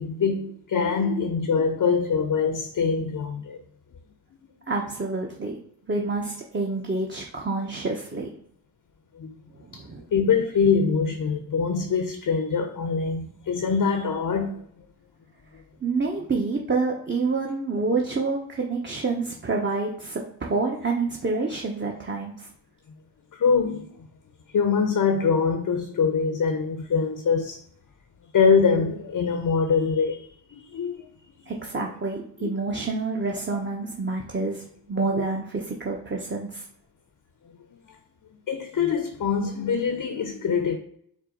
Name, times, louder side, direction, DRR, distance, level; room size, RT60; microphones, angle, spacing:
voice 1, 0.0-3.6 9.2-9.3 9.7-14.6 23.3-23.9 24.5-27.6 28.3-31.1 32.4-32.5 35.1-35.3 38.5-40.8, left 5 dB, 45° left, 0.7 m, -24 dB
voice 2, 4.7-5.6 5.9-8.3 9.7-10.0 15.8-22.5 31.5-36.6, right 3 dB, 25° right, 0.8 m, -28 dB
4.7 x 2.1 x 3.8 m
supercardioid pair, 45°, 47 cm